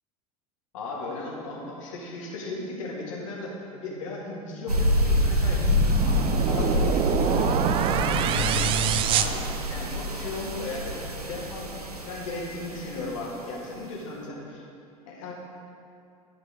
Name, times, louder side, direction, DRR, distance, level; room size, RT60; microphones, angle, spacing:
voice 1, 0.7-6.2 6.4-6.9 7.2-8.6 9.1-9.4 9.7-14.6 15.1-15.3, left 2 dB, 60° left, -3 dB, 1.9 m, -36 dB
sound 1, 4.7-13.1, left 1 dB, 90° right, 0.6 m, -27 dB
sound 2, 5.6-10.2, right 9 dB, 30° right, 0.3 m, -26 dB
11.0 x 4.9 x 4.9 m, 2.6 s
figure-of-eight pair, 75°, 19 cm